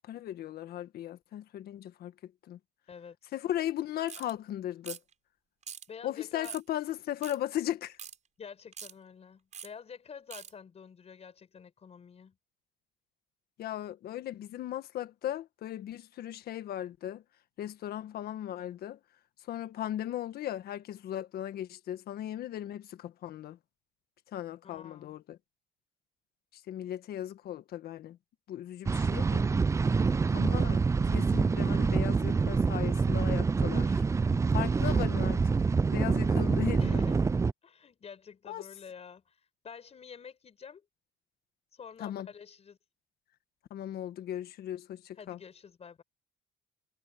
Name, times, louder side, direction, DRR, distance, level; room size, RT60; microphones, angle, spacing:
voice 1, 0.1-2.6 3.3-5.0 6.0-8.0 13.6-17.2 17.6-19.0 19.5-23.6 24.3-25.4 26.7-28.2 28.5-29.5 30.3-34.0 34.5-35.5 35.9-37.1 38.5-38.7 42.0-42.3 43.7-45.4, left 12 dB, 65° left, 1.6 m, -37 dB
sound 1, 4.1-4.3 4.8-5.1 5.6-5.9 6.4-6.7 7.2-7.4 8.0-8.2 8.7-8.9 9.5-9.7 10.3-10.5, right 7 dB, 45° right, 5.8 m, -43 dB
voice 2, 5.9-6.6 8.4-12.4 24.6-25.2 29.9-30.2 36.8-37.3 37.6-40.9 41.7-42.8 45.2-46.0, left 6 dB, 40° left, 5.1 m, -48 dB
sound 2, 28.8-37.5, right 4 dB, 15° right, 0.4 m, -26 dB
cardioid pair, 110°, 17 cm